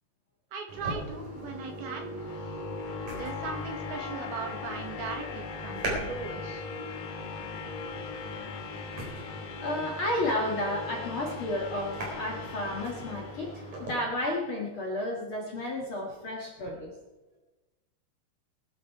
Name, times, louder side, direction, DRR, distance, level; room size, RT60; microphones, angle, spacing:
voice 1, 0.5-2.1 2.3-2.5 3.1-6.6, right 5 dB, 75° right, 2 dB, 3.8 m, -38 dB
sound 1, 0.7-13.9, right 1 dB, 45° right, 5.0 m, -41 dB
sound 2, 1.1-14.0, left 4 dB, 85° left, 3.6 m, -40 dB
voice 2, 9.5-17.0, left 1 dB, 45° left, -1 dB, 2.0 m, -32 dB
22.0 x 8.1 x 4.7 m, 1.1 s
omnidirectional pair, 4.5 m